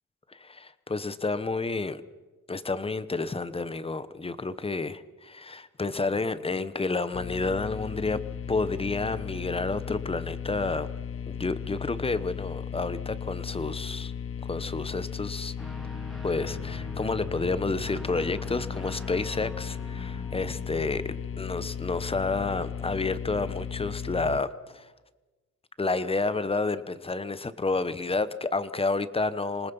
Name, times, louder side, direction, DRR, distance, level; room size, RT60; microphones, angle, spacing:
voice 1, 0.3-2.0 2.5-8.2 8.5-10.9 11.3-14.1 14.4-15.5 16.2-24.9 25.8-29.7, left 3 dB, 20° left, 14 dB, 1.1 m, -30 dB
sound 1, 7.1-24.4, left 7 dB, 45° left, 0.9 m, -36 dB
Guitar, 15.6-23.2, equal, ahead, 2.5 m, -45 dB
26.5 x 19.5 x 5.6 m, 1.2 s
cardioid pair, 90°, 30 cm